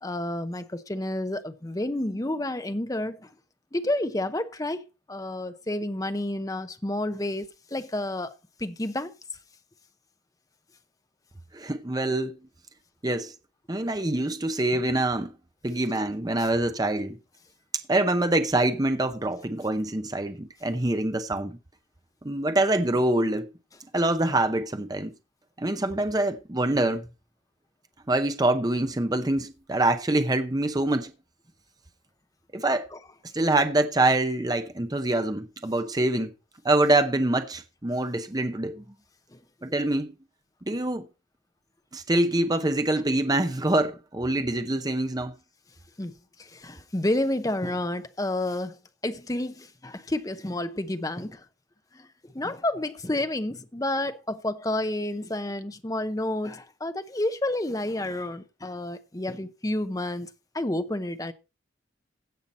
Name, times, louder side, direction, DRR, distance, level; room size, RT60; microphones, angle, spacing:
voice 1, 0.0-3.3 3.7-4.8 5.1-9.1 14.7-14.8 16.4-16.5 32.9-33.0 39.3-39.4 46.0-51.4 51.9-60.3 60.5-61.3, left 1 dB, 20° left, 0.7 m, -30 dB
voice 2, 11.5-12.4 13.0-13.3 13.7-15.3 15.6-17.2 17.9-21.6 22.2-23.5 23.9-25.1 25.6-27.0 28.1-31.1 32.5-32.9 33.3-36.3 36.6-38.8 39.6-40.1 40.7-41.1 41.9-45.3, right 2 dB, 20° right, 0.7 m, -25 dB
16.0 x 5.8 x 4.2 m
head